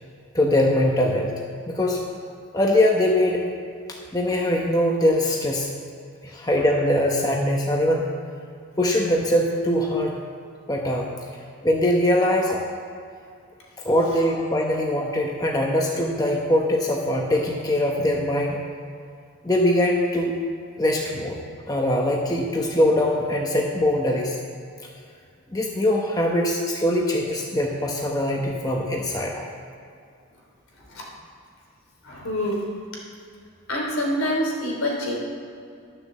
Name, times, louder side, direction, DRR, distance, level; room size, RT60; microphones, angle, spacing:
voice 1, 0.3-1.3 1.7-2.0 2.5-3.4 4.1-5.7 6.2-8.1 8.8-10.2 10.7-11.1 11.6-12.6 13.8-18.6 19.4-20.3 20.8-21.4 21.7-24.4 25.5-29.4, left 1 dB, 15° left, -1 dB, 0.9 m, -22 dB
voice 2, 32.0-32.6 33.7-35.1, equal, 75° left, -2 dB, 3.2 m, -26 dB
12.0 x 6.8 x 7.3 m, 2.4 s
head